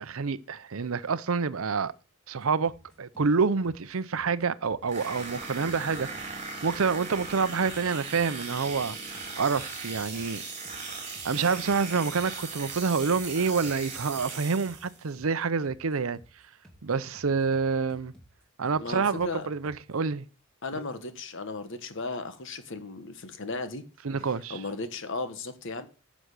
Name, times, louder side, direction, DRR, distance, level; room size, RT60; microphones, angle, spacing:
voice 1, 0.0-1.9 2.3-2.7 3.0-10.4 11.2-16.2 16.8-18.1 18.6-20.3 20.7-20.8 24.0-24.6, right 5 dB, 70° right, 0.6 m, -28 dB
sound 1, 2.3-20.0, equal, 5° left, 2.5 m, -56 dB
sound 2, 4.9-15.0, right 4 dB, 35° right, 3.7 m, -38 dB
voice 2, 18.8-19.5 20.6-23.8 24.5-25.9, left 3 dB, 60° left, 1.3 m, -35 dB
10.0 x 6.3 x 6.5 m
head